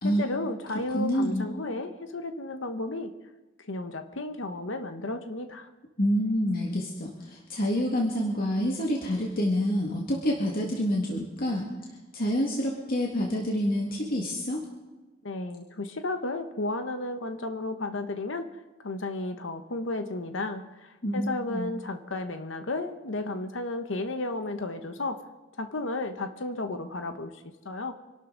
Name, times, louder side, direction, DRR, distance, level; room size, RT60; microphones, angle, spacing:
voice 1, 0.0-3.1 3.6-5.7 15.2-18.5 18.8-25.2 25.6-27.9, left 2 dB, 85° left, 8 dB, 1.1 m, -33 dB
voice 2, 0.9-1.5 6.0-11.7 12.1-14.6 21.0-21.7, equal, 50° left, -1 dB, 1.9 m, -27 dB
26.0 x 12.5 x 3.9 m, 1.2 s
head